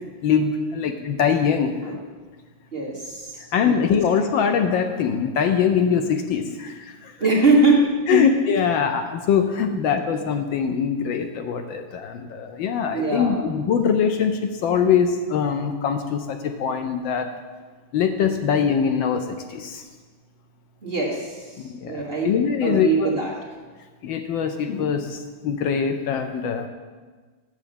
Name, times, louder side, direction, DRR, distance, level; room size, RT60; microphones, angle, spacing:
voice 1, 0.2-1.7 3.5-7.1 8.1-17.3 17.9-19.2 19.5-19.8 21.6-23.1 24.0-26.7, left 7 dB, 75° left, 7 dB, 1.3 m, -23 dB
voice 2, 2.7-3.8 7.2-8.2 9.7-9.8 12.9-13.6 20.8-22.3 22.6-23.3, right 3 dB, 30° right, -3 dB, 1.6 m, -22 dB
8.2 x 7.4 x 7.1 m, 1.4 s
omnidirectional pair, 2.3 m